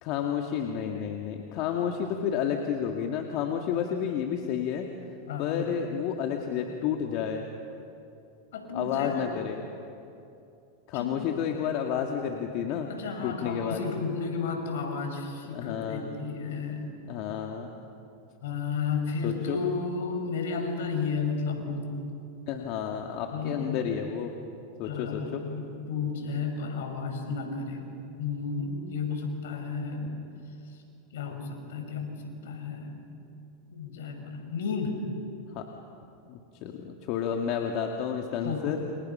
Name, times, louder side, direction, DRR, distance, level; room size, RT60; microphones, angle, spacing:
voice 1, 0.0-4.9 5.4-7.5 8.7-9.6 10.9-12.9 13.2-13.8 15.5-16.0 17.1-17.7 19.2-19.6 22.5-24.3 24.8-25.4 35.5-35.6 36.3-38.8, left 8 dB, 55° left, 2 dB, 2.2 m, -31 dB
voice 2, 5.3-5.7 8.5-9.3 10.9-11.1 12.9-17.0 18.4-21.9 23.3-23.9 24.8-27.8 28.2-30.2 30.7-30.8 31.1-33.0 33.7-35.0 38.4-38.8, left 5 dB, 75° left, 4 dB, 6.1 m, -33 dB
29.5 x 28.5 x 5.8 m, 2.7 s
hypercardioid pair, 100°, 0 cm